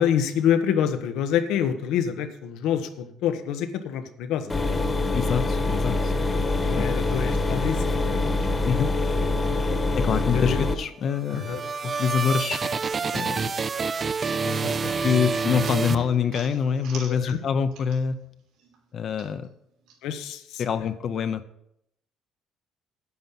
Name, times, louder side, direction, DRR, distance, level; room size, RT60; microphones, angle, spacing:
voice 1, 0.0-4.5 6.6-8.4 10.3-10.6 11.3-11.6 14.4-14.9 17.1-17.4 20.0-20.6, left 8 dB, 90° left, 9 dB, 1.2 m, -27 dB
sound 1, 4.5-10.7, left 2 dB, 15° left, 1.2 m, -24 dB
voice 2, 5.1-6.1 6.7-6.9 8.6-8.9 9.9-11.4 11.8-12.7 13.1-13.5 14.9-18.2 18.9-19.5 20.6-21.4, left 7 dB, 40° left, 10 dB, 0.6 m, -25 dB
sound 2, 11.0-16.6, right 5 dB, 25° right, 0.4 m, -28 dB
sound 3, 15.5-18.3 18.6-20.0, right 6 dB, 80° right, 3.1 m, -46 dB
9.5 x 9.2 x 5.8 m, 0.76 s
cardioid pair, 175°, 0 cm